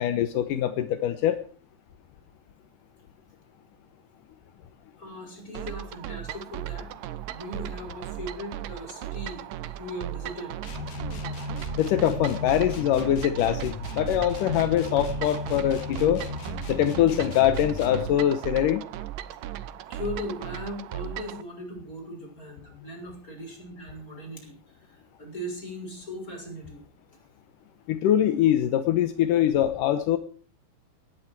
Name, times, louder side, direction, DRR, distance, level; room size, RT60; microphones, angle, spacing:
voice 1, 0.0-1.4 11.8-16.2 16.7-18.8 27.9-30.2, left 11 dB, 75° left, 10 dB, 2.0 m, -23 dB
voice 2, 5.0-6.9 7.3-10.6 19.9-26.8, left 1 dB, 20° left, 2 dB, 6.4 m, -38 dB
sound 1, 5.5-21.4, right 12 dB, 80° right, 2.0 m, -37 dB
sound 2, 10.6-18.1, left 2 dB, 50° left, 3.6 m, -36 dB
19.0 x 16.5 x 4.6 m, 0.41 s
omnidirectional pair, 5.0 m